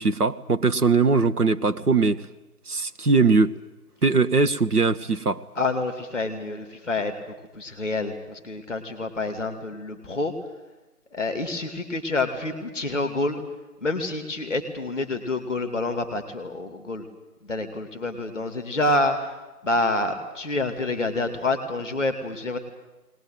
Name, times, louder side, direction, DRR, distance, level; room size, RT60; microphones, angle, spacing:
voice 1, 0.0-2.3 2.7-3.5 4.0-5.4, right 4 dB, 75° right, 9 dB, 1.3 m, -21 dB
voice 2, 5.6-7.1 7.5-10.3 11.1-13.4 13.8-17.1 17.4-19.4 19.6-22.6, left 2 dB, ahead, 7 dB, 1.8 m, -27 dB
20.5 x 20.0 x 9.1 m, 1.1 s
figure-of-eight pair, 160°, 46 cm